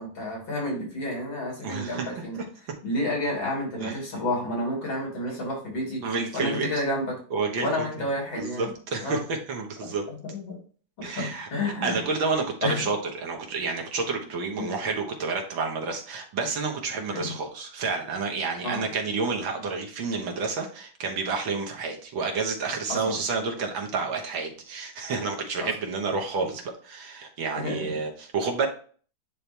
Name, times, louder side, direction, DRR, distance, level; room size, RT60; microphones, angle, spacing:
voice 1, 0.0-2.4 2.8-6.0 6.3-7.1 7.6-8.7 9.0-9.2 10.1-10.6 11.0-12.1 12.6-12.8 14.6-14.7 17.1-17.4 18.6-18.9 22.9-23.2 25.6-25.7 27.5-28.0, left 1 dB, 85° left, -2 dB, 3.5 m, -30 dB
voice 2, 1.6-2.2 3.8-3.9 6.0-6.7 7.3-7.9 8.3-10.1 11.0-28.7, right 4 dB, 85° right, 2 dB, 2.1 m, -30 dB
9.9 x 3.4 x 3.0 m, 0.43 s
omnidirectional pair, 2.1 m